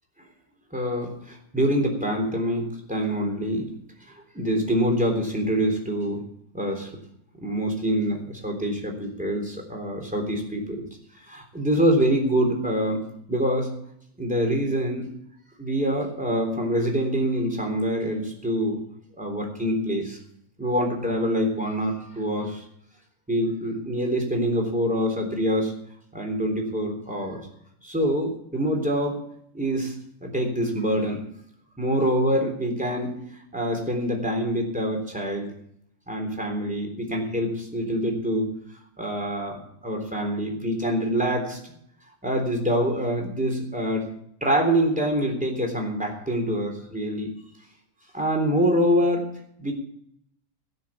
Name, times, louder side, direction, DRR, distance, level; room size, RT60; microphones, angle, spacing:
voice 1, 0.7-3.7 4.3-6.2 6.5-6.9 7.4-10.8 11.3-13.0 13.3-13.7 14.2-15.1 15.6-18.8 19.2-20.2 20.6-22.6 23.3-25.7 26.1-27.4 27.8-29.2 29.5-29.9 30.2-31.2 31.8-33.2 33.5-35.5 36.1-38.5 39.0-41.6 42.2-44.1 44.4-47.3 48.1-49.3 49.6-49.7, equal, 5° right, 1 dB, 3.6 m, -25 dB
18.0 x 6.8 x 7.3 m, 0.70 s
omnidirectional pair, 1.5 m